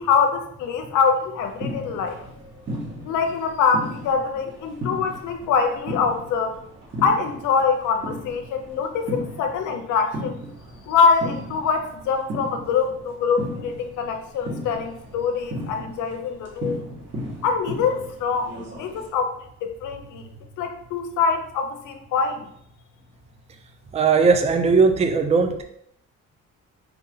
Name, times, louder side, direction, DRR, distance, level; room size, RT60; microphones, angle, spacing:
voice 1, 0.0-2.2 3.0-6.6 7.0-10.4 10.9-16.9 17.4-20.2 20.6-22.5, left 5 dB, 80° left, 5 dB, 0.6 m, -24 dB
sound 1, 1.4-19.1, equal, 40° right, 1.6 m, -36 dB
voice 2, 23.9-25.6, right 4 dB, 20° right, 7 dB, 0.4 m, -18 dB
4.5 x 2.7 x 3.8 m, 0.70 s
cardioid pair, 90°, 30 cm